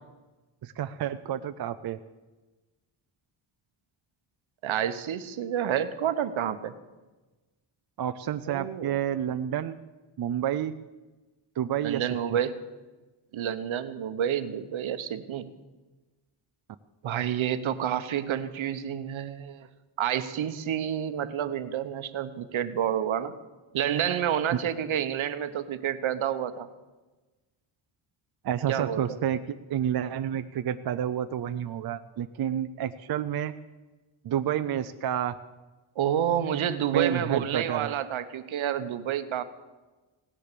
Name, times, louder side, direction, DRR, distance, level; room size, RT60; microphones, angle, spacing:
voice 1, 0.6-2.0 8.0-9.8 10.2-10.7 11.6-12.0 12.3-12.4 24.5-24.6 28.4-29.4 29.7-33.5 34.2-35.3 36.9-37.9, right 10 dB, 50° right, 10 dB, 0.5 m, -29 dB
voice 2, 4.6-6.7 8.5-9.0 11.8-12.6 13.3-15.5 17.0-19.7 20.0-23.3 23.7-26.7 28.7-29.2 36.0-39.4, right 9 dB, 75° right, 11 dB, 1.0 m, -29 dB
17.5 x 10.0 x 6.7 m, 1.2 s
wide cardioid pair, 180°, 49 cm